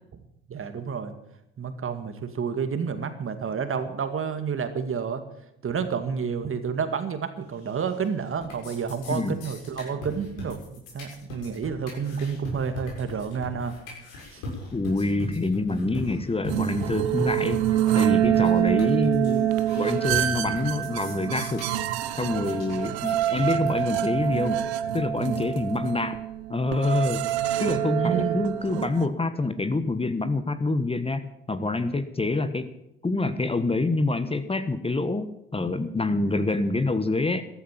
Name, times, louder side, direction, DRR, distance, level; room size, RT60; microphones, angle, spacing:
voice 1, 0.5-1.1 1.6-5.2 5.6-10.6 10.9-13.7 14.3-14.4 22.9-23.0 28.0-28.4, right 6 dB, 40° right, 9 dB, 2.2 m, -30 dB
sound 1, 7.6-8.1 8.3-24.3, left 2 dB, 75° left, 6.9 m, -39 dB
voice 2, 14.7-17.6 17.9-19.5 19.7-21.7 22.2-24.6 24.9-26.2 26.5-27.2 27.6-32.7 33.0-37.4, left 2 dB, 20° left, 11 dB, 1.4 m, -26 dB
sound 2, 16.5-29.1, right 12 dB, 80° right, 1.0 m, -26 dB
14.0 x 12.5 x 7.5 m, 0.81 s
hypercardioid pair, 55°, 31 cm